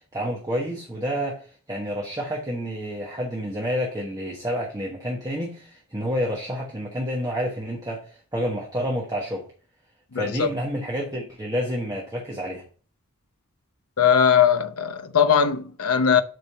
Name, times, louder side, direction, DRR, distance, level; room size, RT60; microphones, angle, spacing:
voice 1, 0.1-1.4 1.7-9.5 10.1-12.6, equal, 15° right, 1.3 m, -29 dB
voice 2, 10.1-10.5 14.0-16.2, left 7 dB, 75° left, 0.8 m, -20 dB
7.8 x 3.7 x 5.9 m
head